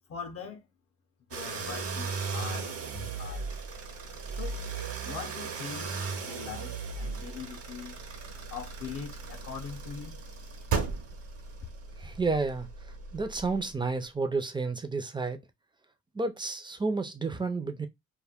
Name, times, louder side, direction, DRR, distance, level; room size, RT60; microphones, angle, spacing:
voice 1, 0.1-0.7 1.3-3.4 4.3-4.6 5.0-6.0 6.2-8.0 8.5-10.2, left 6 dB, 50° left, 0.6 m, -41 dB
sound 1, 1.3-13.7, right 5 dB, 50° right, 0.8 m, -37 dB
voice 2, 12.0-12.7 13.1-15.4 16.1-17.9, right 3 dB, 15° right, 0.5 m, -31 dB
2.2 x 2.1 x 3.4 m
cardioid pair, 90°, 30 cm